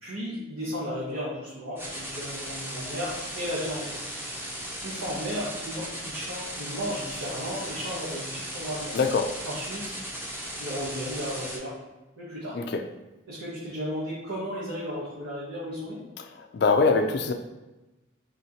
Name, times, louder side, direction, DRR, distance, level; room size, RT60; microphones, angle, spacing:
voice 1, 0.0-3.9 4.8-8.9 9.4-9.9 10.6-11.7 12.2-12.6 13.3-16.0, equal, 90° right, -9 dB, 1.3 m, -34 dB
sound 1, 1.8-11.6, equal, 10° right, 0.6 m, -37 dB
voice 2, 8.9-9.3 12.5-12.6 16.5-17.3, left 4 dB, 55° left, 5 dB, 0.4 m, -22 dB
4.4 x 3.1 x 2.7 m, 1.1 s
head